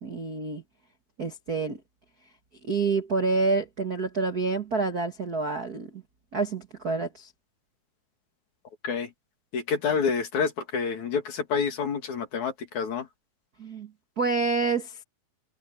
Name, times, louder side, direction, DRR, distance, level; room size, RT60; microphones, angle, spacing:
voice 1, 0.0-0.6 1.2-1.8 2.6-6.0 6.3-7.3 13.6-13.9 14.2-15.0, right 4 dB, 45° right, 1.2 m, -28 dB
voice 2, 9.5-13.1, left 6 dB, 55° left, 3.5 m, -28 dB
omnidirectional pair, 4.3 m